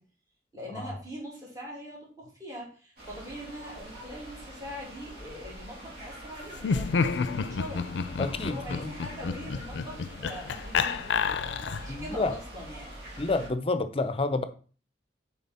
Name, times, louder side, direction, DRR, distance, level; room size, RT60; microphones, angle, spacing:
voice 1, 0.5-12.9, equal, 20° right, 2.7 m, -43 dB
sound 1, 3.0-13.5, equal, 60° right, 2.6 m, -45 dB
Laughter, 6.6-12.0, left 5 dB, 80° left, 0.5 m, -30 dB
voice 2, 8.2-8.9 11.9-12.3 13.2-14.4, left 3 dB, 30° left, 0.6 m, -29 dB
7.0 x 4.6 x 4.2 m
head